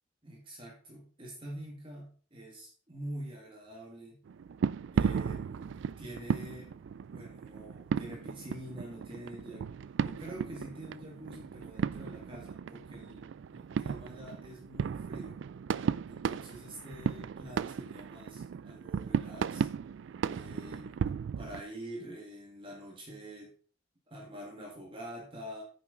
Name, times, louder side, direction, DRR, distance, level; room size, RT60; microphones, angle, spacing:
voice 1, 0.2-4.2 4.9-6.7 7.1-9.6 10.0-13.2 13.5-15.4 16.1-19.7 20.3-21.0 21.4-23.5 24.1-25.6, right 1 dB, 25° right, -1 dB, 1.9 m, -46 dB
sound 1, 4.3-21.6, right 6 dB, 65° right, 0.3 m, -35 dB
9.6 x 6.9 x 3.8 m, 0.43 s
head